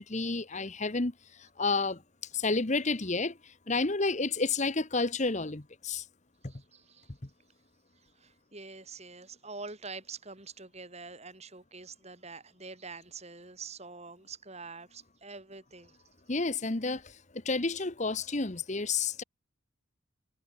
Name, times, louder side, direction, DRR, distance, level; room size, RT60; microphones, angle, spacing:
voice 1, 0.0-6.1 6.4-6.5 16.3-19.2, left 3 dB, 35° left, 1.1 m, -31 dB
voice 2, 6.5-7.1 8.2-16.0, right 4 dB, 30° right, 4.3 m, -46 dB
head